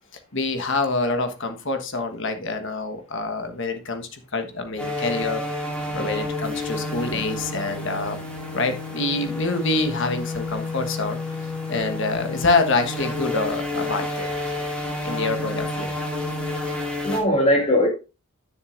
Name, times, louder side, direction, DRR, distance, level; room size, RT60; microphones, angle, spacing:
voice 1, 0.3-5.4 5.9-8.3 8.5-11.2 11.7-14.3 15.0-15.9, left 3 dB, 55° left, 1.3 m, -26 dB
sound 1, 4.8-17.2, left 2 dB, 5° left, 2.2 m, -30 dB
voice 2, 5.8-6.2 6.9-7.0 17.0-17.9, equal, 30° left, 2.4 m, -21 dB
11.0 x 6.7 x 2.6 m
head